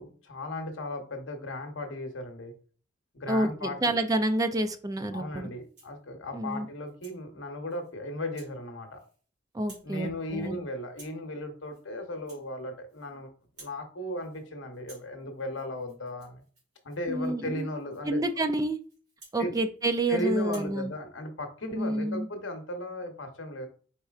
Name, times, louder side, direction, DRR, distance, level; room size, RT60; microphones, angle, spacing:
voice 1, 0.0-2.5 3.1-4.0 5.1-9.0 9.8-13.3 13.6-16.4 16.8-18.2 19.4-19.6 20.1-23.7, left 1 dB, 80° left, 5 dB, 0.9 m, -36 dB
voice 2, 3.3-5.5 6.3-6.7 9.5-10.6 17.1-17.7 18.1-18.8 19.3-20.9 21.7-22.3, right 1 dB, 20° right, 8 dB, 0.4 m, -28 dB
Rattle (instrument), 5.6-6.0 6.5-7.2 7.7-7.9 8.3-8.6 8.9-9.3 9.5-9.9 10.2-10.5 10.9-11.3 11.6-11.9 12.1-13.1 13.4-13.8 14.1-14.5 14.7-20.1 20.4-20.8, right 2 dB, 60° right, 2.3 m, -56 dB
4.4 x 4.3 x 2.4 m, 0.42 s
head